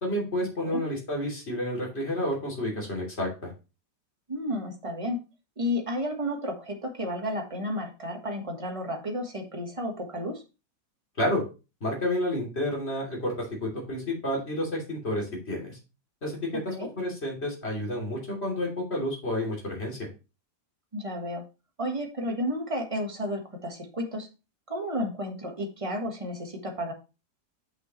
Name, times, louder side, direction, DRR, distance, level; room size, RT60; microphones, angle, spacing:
voice 1, 0.0-3.5 11.2-11.4 11.8-15.8 16.2-20.1, left 1 dB, 40° left, -2 dB, 3.3 m, -30 dB
voice 2, 4.3-5.2 5.6-10.4 16.5-16.9 20.9-21.4 21.8-24.3 24.7-26.9, equal, 20° right, 3 dB, 1.4 m, -32 dB
7.9 x 5.8 x 3.1 m, 0.30 s
omnidirectional pair, 1.7 m